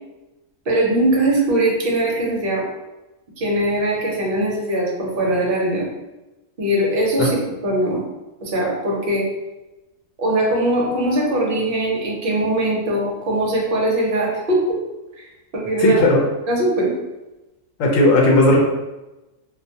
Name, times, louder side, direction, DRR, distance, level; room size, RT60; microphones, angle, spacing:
voice 1, 0.7-2.6 3.4-5.9 6.6-7.4 7.6-8.0 8.4-9.3 10.2-14.8 15.2-15.3 15.5-16.0 16.5-16.9, right 1 dB, 50° right, -3 dB, 0.8 m, -20 dB
voice 2, 15.8-16.2 17.8-18.6, left 2 dB, 75° left, -1 dB, 1.0 m, -15 dB
2.5 x 2.1 x 2.6 m, 1.0 s
omnidirectional pair, 1.4 m